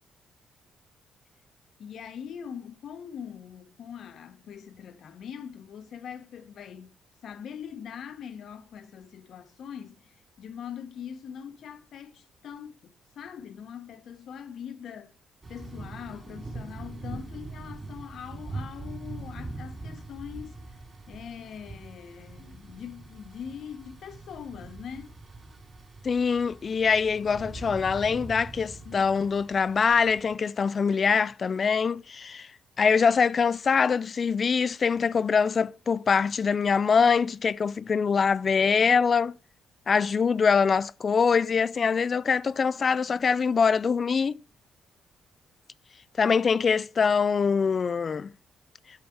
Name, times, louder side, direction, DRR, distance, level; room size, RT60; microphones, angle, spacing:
voice 1, 1.8-6.9 7.2-12.9 13.2-15.1 15.5-20.8 21.1-25.1 28.8-29.0, left 8 dB, 65° left, 1.0 m, -42 dB
Thunder / Rain, 15.4-30.3, right 3 dB, 30° right, 3.2 m, -42 dB
voice 2, 26.0-32.5 32.8-39.3 39.9-44.4 46.2-48.3, left 5 dB, 40° left, 0.4 m, -24 dB
8.7 x 5.6 x 4.5 m
cardioid pair, 90°, 0 cm